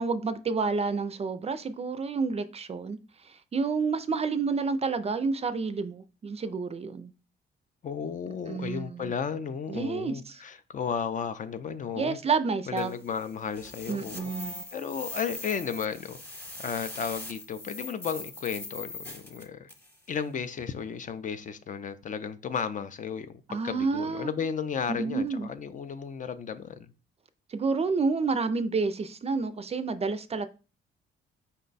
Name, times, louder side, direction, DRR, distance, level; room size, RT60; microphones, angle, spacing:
voice 1, 0.0-3.0 3.2-7.1 8.5-9.1 9.7-10.4 12.0-12.9 13.9-14.6 23.5-24.3 24.9-25.5 27.5-30.5, right 4 dB, 30° right, 0.4 m, -29 dB
voice 2, 7.8-12.2 12.7-19.7 20.1-26.9, left 6 dB, 40° left, 0.4 m, -34 dB
sound 1, 12.8-20.0, left 1 dB, 10° left, 1.0 m, -41 dB
5.2 x 2.2 x 3.9 m
cardioid pair, 90°, 20 cm